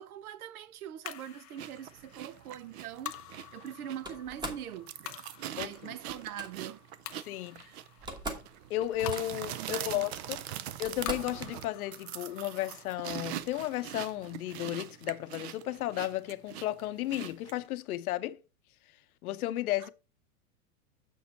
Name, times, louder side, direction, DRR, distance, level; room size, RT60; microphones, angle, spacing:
voice 1, 0.0-3.2 3.5-6.8 7.5-7.8 9.6-10.1 19.8-19.9, right 10 dB, 75° right, 0.9 m, -43 dB
sound 1, 1.0-15.6, left 14 dB, 30° left, 0.4 m, -49 dB
sound 2, 1.6-17.7, right 12 dB, 45° right, 0.6 m, -42 dB
Slam, 4.0-4.7 6.1-6.5 7.6-7.7 7.9-8.5 8.8-9.5 10.3-10.4 10.8-11.4, right 1 dB, 10° right, 1.1 m, -40 dB
voice 2, 5.6-5.9 7.3-7.7 8.7-10.4 10.8-18.4 19.2-19.9, left 14 dB, 70° left, 0.8 m, -34 dB
7.2 x 6.2 x 4.1 m
hypercardioid pair, 140°, 45 cm